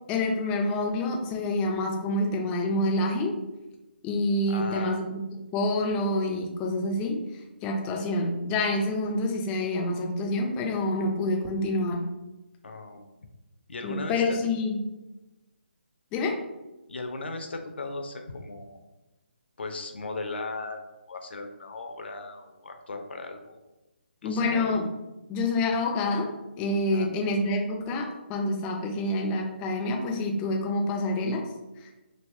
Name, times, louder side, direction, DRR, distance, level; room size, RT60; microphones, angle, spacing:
voice 1, 0.1-3.3 4.0-5.2 5.5-7.2 7.6-12.1 13.8-14.8 16.1-16.4 24.2-24.9 25.3-26.3 26.6-31.5 31.8-31.9, left 2 dB, 15° left, 1 dB, 0.3 m, -27 dB
voice 2, 4.5-5.0 12.6-13.1 13.7-14.4 16.9-18.8 19.6-20.8 21.1-23.6 24.2-24.8 26.9-27.1, left 3 dB, 65° left, 5 dB, 0.5 m, -37 dB
3.2 x 2.8 x 2.6 m, 1.0 s
figure-of-eight pair, 150°, 6 cm